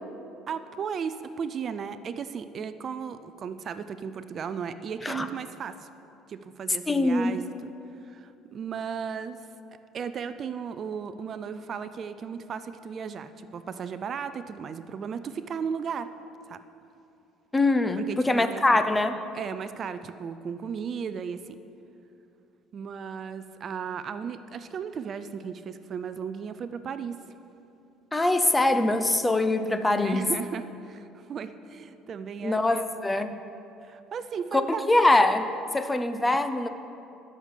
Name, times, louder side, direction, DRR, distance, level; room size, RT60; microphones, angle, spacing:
voice 1, 0.5-5.9 6.3-7.7 8.0-9.5 9.9-16.1 16.5-16.6 18.0-18.8 19.3-21.6 22.7-27.2 29.9-32.8 33.8-34.8, right 6 dB, 40° right, 11 dB, 0.4 m, -35 dB
voice 2, 6.9-7.3 17.5-19.2 28.1-30.3 32.4-33.4 34.5-34.6 34.9-36.7, left 2 dB, 10° left, 10 dB, 0.6 m, -23 dB
12.0 x 6.7 x 6.5 m, 2.8 s
cardioid pair, 115°, 0 cm